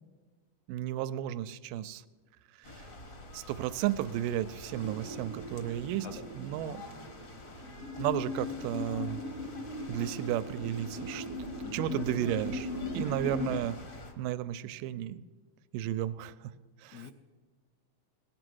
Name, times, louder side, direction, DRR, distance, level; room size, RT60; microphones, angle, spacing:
voice 1, 0.7-2.0 2.6-2.8 3.3-6.1 6.4-6.8 8.0-9.2 9.9-11.3 11.7-13.8 14.2-15.2 15.7-16.5 16.8-17.1, right 12 dB, 90° right, 14 dB, 2.2 m, -33 dB
sound 1, 2.6-14.1, left 2 dB, 50° left, 1.0 m, -48 dB
sound 2, 4.7-13.6, left 2 dB, 75° right, 2.0 m, -39 dB
voice 2, 6.0-6.4 11.6-12.0 13.2-13.6 16.9-17.1, left 7 dB, 80° left, 6 dB, 1.4 m, -47 dB
18.5 x 11.0 x 6.3 m, 1.5 s
omnidirectional pair, 3.8 m